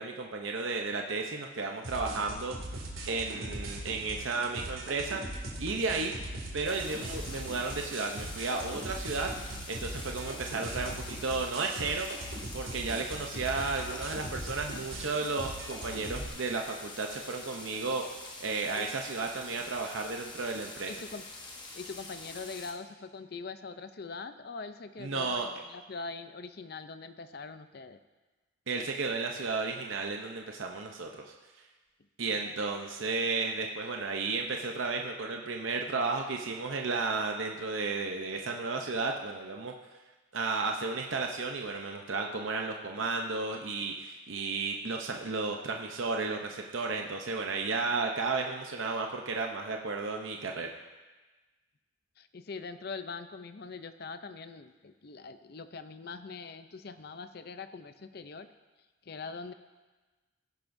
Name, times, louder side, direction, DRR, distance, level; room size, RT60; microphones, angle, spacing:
voice 1, 0.0-2.5 3.1-6.1 6.5-12.1 12.5-18.0 18.4-20.9 25.0-25.5 28.7-31.3 32.2-39.7 40.3-50.7, right 3 dB, 70° right, 2 dB, 0.7 m, -33 dB
sound 1, 1.8-16.3, right 1 dB, 90° right, 2.4 m, -40 dB
sound 2, 6.7-22.7, left 2 dB, 20° left, 1.1 m, -46 dB
voice 2, 20.9-21.2 21.7-28.0 52.2-58.5 59.0-59.5, left 4 dB, 50° left, 10 dB, 0.5 m, -42 dB
16.5 x 10.5 x 2.7 m, 1.2 s
head